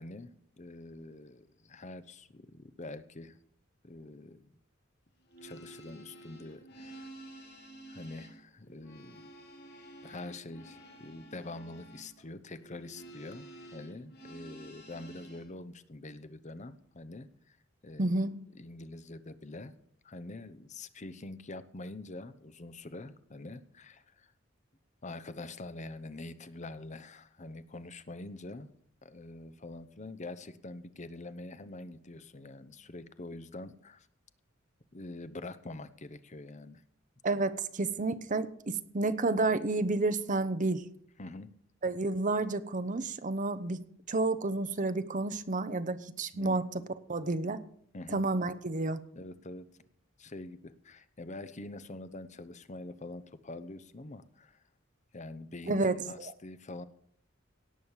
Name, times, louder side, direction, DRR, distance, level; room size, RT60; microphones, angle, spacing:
voice 1, 0.0-3.4 3.8-4.5 5.4-7.1 7.9-9.3 10.0-17.6 17.8-18.2 18.5-19.7 20.0-24.3 25.0-28.7 29.0-34.1 34.9-36.8 41.2-41.5 46.3-46.6 47.9-48.3 49.2-49.7 50.2-54.6 55.1-56.9, left 2 dB, 35° left, 13 dB, 0.8 m, -45 dB
sound 1, 5.2-15.5, right 1 dB, 55° left, 3.1 m, -51 dB
voice 2, 18.0-18.3 37.2-40.8 41.8-43.8 44.1-46.7 47.1-47.6 48.1-49.0 55.7-56.0, right 2 dB, 40° right, 12 dB, 0.8 m, -30 dB
17.5 x 6.4 x 7.3 m, 0.64 s
head